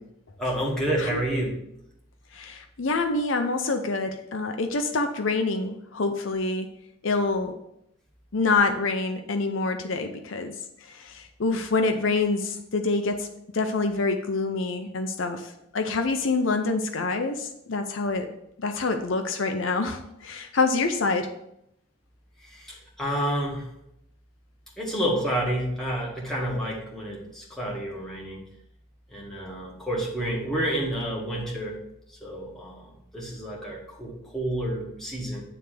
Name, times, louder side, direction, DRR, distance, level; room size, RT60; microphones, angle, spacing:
voice 1, 0.4-1.5 22.4-23.7 24.8-28.4 29.1-31.8 32.2-35.4, right 1 dB, ahead, -4 dB, 1.9 m, -29 dB
voice 2, 2.3-6.7 7.0-7.5 8.3-10.5 10.8-13.3 13.5-18.3 18.6-21.3, left 3 dB, 65° left, 6 dB, 0.6 m, -26 dB
9.6 x 3.4 x 6.6 m, 0.80 s
head